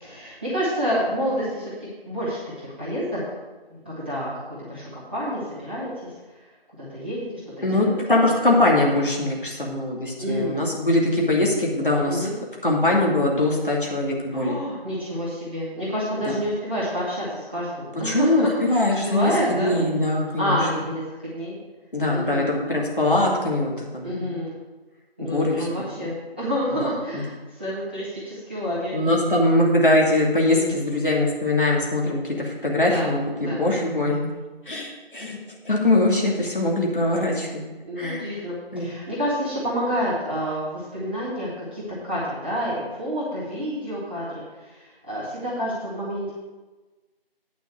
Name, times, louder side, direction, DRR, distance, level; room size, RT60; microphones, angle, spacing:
voice 1, 0.0-3.2 3.7-6.1 6.7-8.0 10.2-10.6 12.0-12.3 14.3-19.8 20.4-21.0 21.3-21.6 22.1-22.6 24.0-24.5 25.2-28.9 30.4-30.8 32.7-33.6 37.8-44.2 44.6-46.3, equal, 10° right, -12 dB, 1.5 m, -29 dB
voice 2, 7.6-12.3 12.6-14.6 16.2-16.3 18.0-20.6 21.9-24.4 25.2-25.7 26.0-26.1 27.1-27.2 28.9-34.3 34.7-35.4 35.6-37.5 38.0-38.3 38.7-38.9, left 2 dB, 60° left, -2 dB, 2.5 m, -22 dB
9.5 x 5.2 x 7.7 m, 1.2 s
figure-of-eight pair, 170°, 30 cm